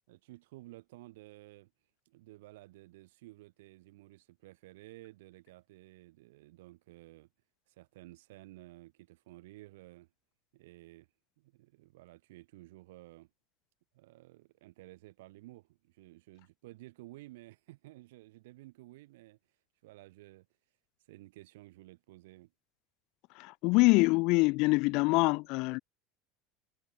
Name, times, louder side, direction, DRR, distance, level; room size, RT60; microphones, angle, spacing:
voice 1, 0.1-1.7 2.0-7.3 7.7-10.1 10.5-11.1 11.4-13.3 13.9-19.4 19.8-20.5 21.1-22.5, right 19 dB, 90° right, 6.8 m, -54 dB
voice 2, 23.4-25.8, left 26 dB, 60° left, 0.9 m, -25 dB
supercardioid pair, 140°, 0 cm